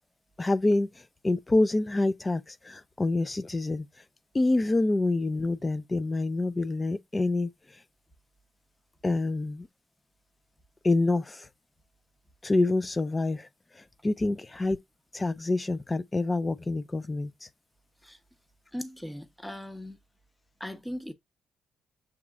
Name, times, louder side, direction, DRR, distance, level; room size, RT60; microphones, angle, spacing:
voice 1, 0.4-4.0 4.3-7.8 9.0-9.7 10.8-11.5 12.4-14.8 15.1-17.5, left 2 dB, 20° left, 0.4 m, -27 dB
voice 2, 18.7-20.0 20.6-21.1, equal, 5° left, 0.8 m, -38 dB
6.9 x 3.1 x 2.4 m
cardioid pair, 90°, 0 cm